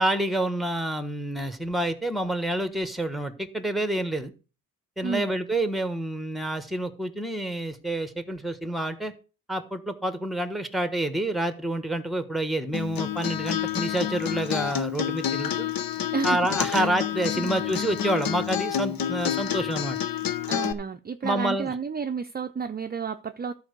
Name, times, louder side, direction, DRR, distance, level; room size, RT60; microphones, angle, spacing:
voice 1, 0.0-4.3 5.0-9.1 9.5-15.7 16.2-20.0 21.2-21.7, right 1 dB, ahead, 1.3 m, -28 dB
Acoustic guitar, 12.7-20.7, left 10 dB, 80° left, 1.0 m, -29 dB
voice 2, 20.5-23.5, right 5 dB, 30° right, 0.5 m, -31 dB
13.0 x 4.7 x 6.6 m
wide cardioid pair, 130°, 34 cm